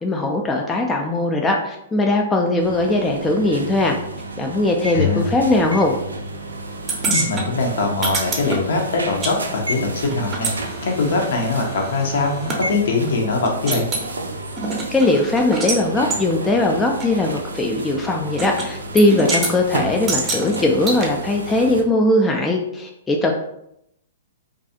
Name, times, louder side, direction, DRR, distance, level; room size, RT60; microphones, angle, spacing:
voice 1, 0.0-4.0 4.4-6.0 14.9-23.3, left 2 dB, 15° left, 1 dB, 0.3 m, -19 dB
sound 1, 2.6-21.8, right 2 dB, 85° right, 0.3 m, -31 dB
voice 2, 4.9-5.3 7.0-13.9, left 3 dB, 65° left, 1 dB, 0.6 m, -22 dB
sound 2, 6.9-9.4 9.6-12.6 13.1-13.2 13.4-14.1 14.6-15.8 16.1-16.2 17.0-17.1 18.4-18.7 19.0-19.5 20.1-21.1, right 3 dB, 25° right, 0.6 m, -26 dB
2.3 x 2.3 x 2.7 m, 0.77 s
figure-of-eight pair, 115°, 0 cm